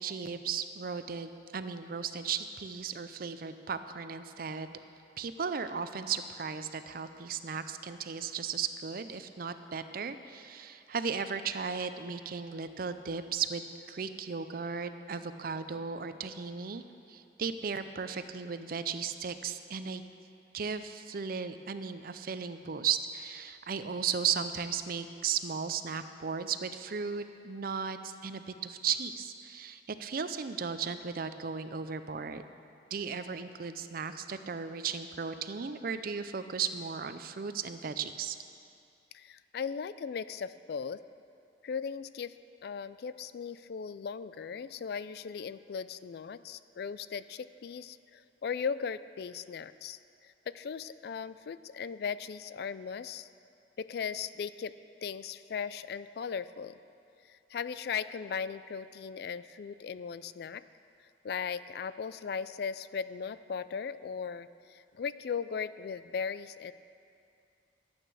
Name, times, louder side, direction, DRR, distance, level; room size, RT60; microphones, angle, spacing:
voice 1, 0.0-4.8 5.2-16.8 17.1-20.0 20.5-32.4 32.9-38.4, right 6 dB, 55° right, 10 dB, 0.5 m, -36 dB
voice 2, 39.1-41.0 41.6-42.4 42.6-53.3 53.8-54.8 55.0-56.8 57.3-60.6 61.2-66.7, left 6 dB, 60° left, 15 dB, 0.3 m, -38 dB
12.5 x 8.9 x 6.3 m, 2.6 s
head